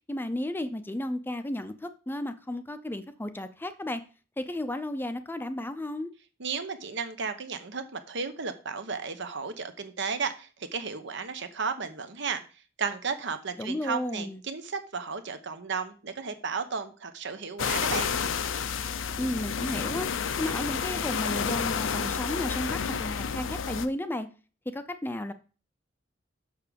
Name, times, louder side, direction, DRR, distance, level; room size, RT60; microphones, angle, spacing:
voice 1, 0.1-4.0 4.4-6.1 13.6-14.4 19.2-20.1 20.4-24.3 24.7-25.3, left 1 dB, 10° left, 10 dB, 0.5 m, -33 dB
voice 2, 6.4-12.4 12.8-18.1, right 5 dB, 65° right, 9 dB, 1.0 m, -34 dB
sound 1, 17.6-23.9, left 6 dB, 80° left, 0.6 m, -30 dB
6.7 x 6.1 x 5.2 m, 0.36 s
head